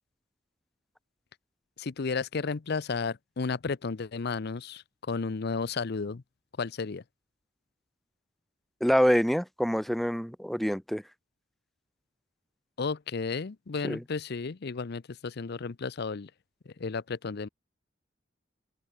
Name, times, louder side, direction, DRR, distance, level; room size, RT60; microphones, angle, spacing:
voice 1, 1.8-6.2 6.6-7.0 12.8-16.3 16.7-17.5, left 4 dB, 60° left, 0.6 m, -33 dB
voice 2, 8.8-11.0 13.8-14.0, equal, ahead, 0.6 m, -26 dB
open air
head